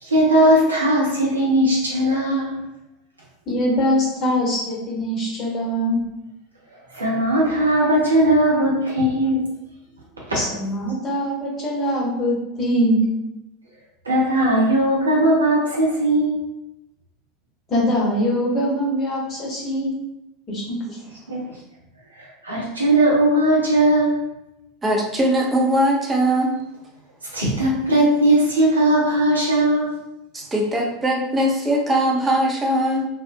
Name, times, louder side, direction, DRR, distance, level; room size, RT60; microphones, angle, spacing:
voice 1, 0.0-2.6 6.9-9.4 10.3-10.4 14.0-16.4 21.3-21.4 22.2-24.2 27.3-29.9, right 1 dB, 80° right, -5 dB, 0.7 m, -18 dB
voice 2, 3.5-6.0 10.3-13.0 17.7-19.9 20.5-20.8, equal, 30° left, -4 dB, 0.9 m, -22 dB
voice 3, 24.8-26.5 30.3-33.0, right 1 dB, 15° right, 0 dB, 0.6 m, -20 dB
2.5 x 2.1 x 2.5 m, 0.90 s
figure-of-eight pair, 80°, 0 cm